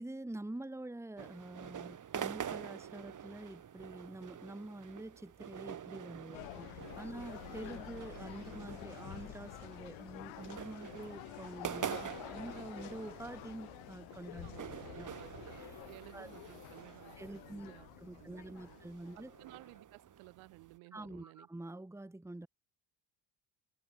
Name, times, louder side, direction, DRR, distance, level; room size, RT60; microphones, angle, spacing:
voice 1, 0.0-15.3 16.1-16.3 17.2-19.3 20.9-22.5, right 1 dB, 5° right, 1.6 m, -47 dB
sound 1, 1.2-20.8, right 8 dB, 40° right, 2.4 m, -47 dB
sound 2, 6.3-19.8, left 24 dB, 75° left, 2.7 m, -50 dB
voice 2, 14.4-17.9 18.1-18.8 19.1-21.5, right 26 dB, 75° right, 5.5 m, -57 dB
supercardioid pair, 75°, 48 cm